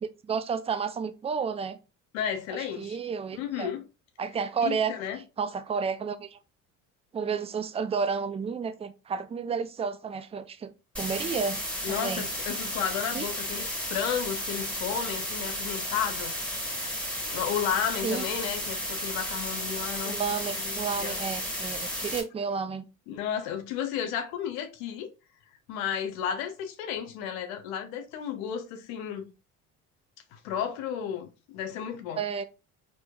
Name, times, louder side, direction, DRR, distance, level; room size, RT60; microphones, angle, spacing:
voice 1, 0.0-1.8 2.5-3.7 4.2-4.9 5.4-6.4 7.1-10.7 11.0-12.2 13.1-13.3 18.0-18.2 20.0-22.9 32.2-32.4, right 6 dB, 15° right, 0.4 m, -31 dB
voice 2, 2.1-3.0 3.3-3.8 4.6-5.2 11.8-16.3 17.3-20.2 20.6-21.2 23.1-25.1 25.7-29.3 30.3-32.2, left 8 dB, 80° left, 0.9 m, -33 dB
sound 1, 10.9-22.2, equal, 5° left, 1.7 m, -33 dB
4.4 x 2.9 x 2.3 m
hypercardioid pair, 70°, 41 cm